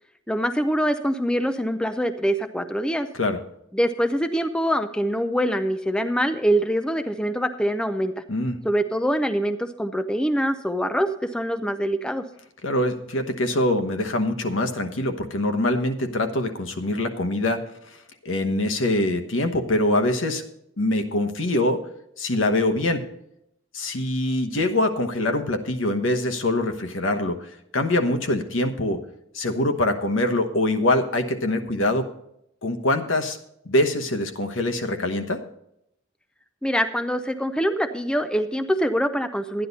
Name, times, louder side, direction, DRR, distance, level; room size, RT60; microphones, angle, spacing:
voice 1, 0.3-3.1 3.7-8.1 8.6-12.2 36.6-39.7, equal, 5° left, 8 dB, 0.4 m, -24 dB
voice 2, 12.6-17.6 18.2-20.4 20.8-21.8 22.2-23.0 23.7-29.0 29.3-32.1 32.6-33.4 33.6-35.4, left 1 dB, 70° left, 6 dB, 1.1 m, -24 dB
12.5 x 10.0 x 4.1 m, 0.78 s
head